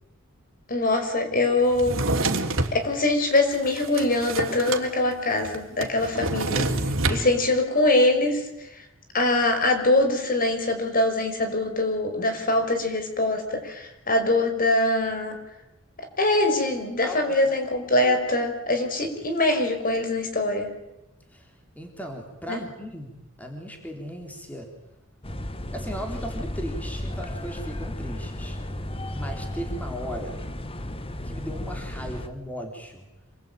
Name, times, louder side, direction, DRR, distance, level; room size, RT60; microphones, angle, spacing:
voice 1, 0.7-2.0 2.7-6.6 7.1-8.5 9.1-15.4 16.2-20.7 22.5-22.6, left 2 dB, 45° left, 6 dB, 5.3 m, -23 dB
Drawer open or close, 1.7-2.8 3.4-4.9 5.1-5.2 5.4-7.2, right 2 dB, 80° right, 3.2 m, -27 dB
voice 2, 21.3-24.7 25.7-28.6 29.1-30.4 31.2-33.1, equal, 10° left, 3 dB, 3.7 m, -37 dB
sound 1, 25.2-32.3, left 1 dB, 30° left, 1.4 m, -34 dB
27.5 x 22.5 x 9.1 m, 0.91 s
head